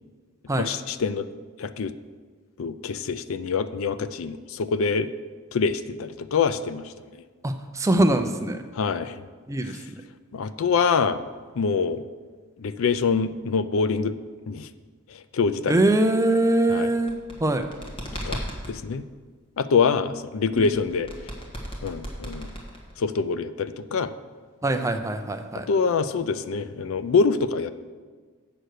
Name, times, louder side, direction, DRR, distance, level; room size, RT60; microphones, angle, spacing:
voice 1, 0.6-1.3 1.6-1.9 2.6-5.1 5.5-7.2 8.7-9.2 10.3-11.2 11.6-12.0 12.6-14.2 14.5-14.7 15.1-15.8 16.7-16.9 18.2-19.0 19.6-21.1 21.8-22.5 23.0-24.1 25.7-27.7, left 5 dB, 65° left, 12 dB, 0.4 m, -25 dB
voice 2, 7.4-8.6 9.5-9.8 15.7-17.6 20.6-20.7 24.6-25.7, right 1 dB, 15° right, 7 dB, 0.5 m, -23 dB
sound 1, 16.9-18.7 20.6-23.1, equal, 25° left, 1.5 m, -35 dB
7.7 x 6.6 x 6.5 m, 1.5 s
head